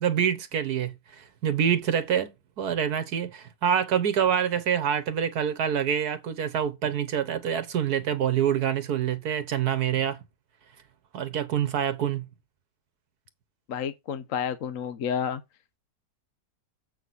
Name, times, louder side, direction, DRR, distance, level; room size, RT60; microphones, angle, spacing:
voice 1, 0.0-10.2 11.1-12.2, right 8 dB, 65° right, 1.4 m, -26 dB
voice 2, 13.7-15.4, left 7 dB, 60° left, 1.0 m, -30 dB
7.8 x 6.0 x 4.0 m
omnidirectional pair, 1.8 m